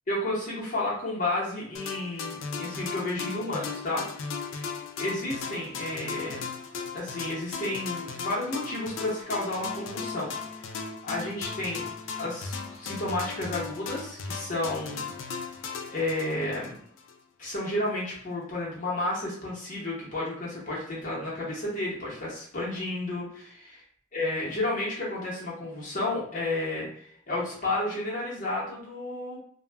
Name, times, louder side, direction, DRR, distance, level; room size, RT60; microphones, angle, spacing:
voice 1, 0.1-4.1 4.3-6.4 6.9-10.3 10.7-11.9 12.2-15.1 15.9-16.8 17.4-23.4 24.1-29.4, left 2 dB, 45° left, -6 dB, 0.9 m, -32 dB
sound 1, 1.7-17.2, left 5 dB, 80° left, 0.4 m, -37 dB
2.3 x 2.1 x 3.3 m, 0.63 s
head